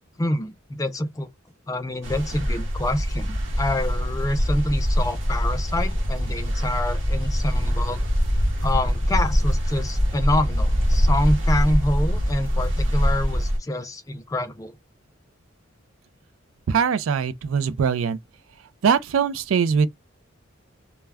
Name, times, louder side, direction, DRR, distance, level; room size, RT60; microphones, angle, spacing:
voice 1, 0.2-1.3 1.7-8.0 8.6-14.7, left 1 dB, 15° left, 0.3 m, -27 dB
sound 1, 2.0-13.6, equal, 70° right, 0.9 m, -23 dB
voice 2, 16.7-18.2 18.8-19.9, right 6 dB, 85° right, 0.4 m, -21 dB
2.2 x 2.2 x 3.3 m
head